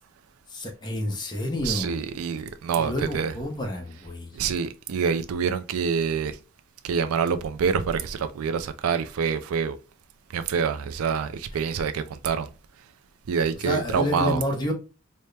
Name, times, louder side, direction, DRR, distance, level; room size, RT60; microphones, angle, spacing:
voice 1, 0.5-1.9 2.8-4.3 13.6-14.7, left 1 dB, 20° left, 0.8 m, -29 dB
voice 2, 1.6-3.3 4.3-6.4 6.8-9.8 10.3-12.5 13.3-14.4, right 6 dB, 90° right, 0.4 m, -26 dB
4.2 x 2.1 x 3.3 m
head